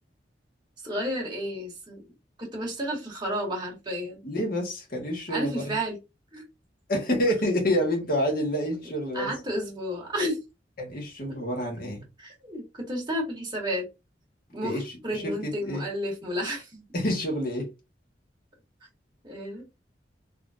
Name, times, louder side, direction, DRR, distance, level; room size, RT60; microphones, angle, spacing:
voice 1, 0.8-2.0 2.4-4.2 5.3-6.0 6.3-6.4 9.1-10.4 12.2-13.9 14.5-14.8 15.0-16.8 19.2-19.6, equal, 25° right, 1.9 m, -31 dB
voice 2, 4.2-5.8 6.9-9.3 10.8-12.0 14.6-15.8 16.9-17.7, equal, 55° left, 1.5 m, -28 dB
3.8 x 3.2 x 2.5 m
head